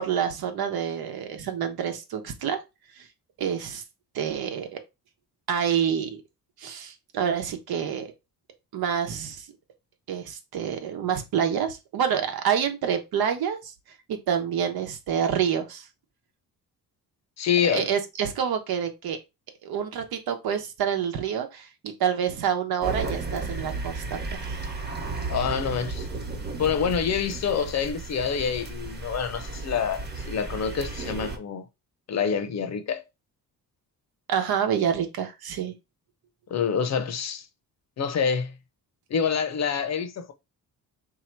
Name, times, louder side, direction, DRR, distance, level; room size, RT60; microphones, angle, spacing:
voice 1, 0.0-2.6 3.0-3.1 3.4-3.8 4.1-4.8 5.5-6.2 6.6-8.1 8.7-9.5 10.1-13.7 14.1-15.9 17.7-19.2 19.6-24.6 34.3-35.7, right 8 dB, 85° right, 1.1 m, -27 dB
voice 2, 17.4-17.9 25.3-26.1 26.6-31.7 32.1-33.0 36.5-37.5 38.0-38.5 39.1-40.3, left 7 dB, 50° left, 0.7 m, -27 dB
sound 1, 22.8-31.4, right 3 dB, 30° right, 1.0 m, -34 dB
3.8 x 2.9 x 4.4 m
cardioid pair, 145°, 36 cm